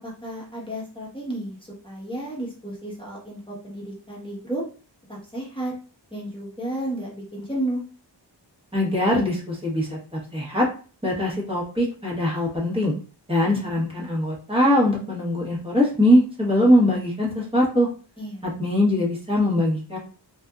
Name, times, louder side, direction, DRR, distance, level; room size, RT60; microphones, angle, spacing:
voice 1, 0.0-1.6 1.8-4.6 5.1-5.7 6.1-7.8 18.2-18.5, right 1 dB, 10° left, -5 dB, 1.1 m, -32 dB
voice 2, 8.7-10.7 11.0-12.9 13.3-17.9 18.4-20.0, left 1 dB, 15° right, -4 dB, 1.1 m, -22 dB
2.6 x 2.6 x 2.3 m, 0.38 s
wide cardioid pair, 65°, 43 cm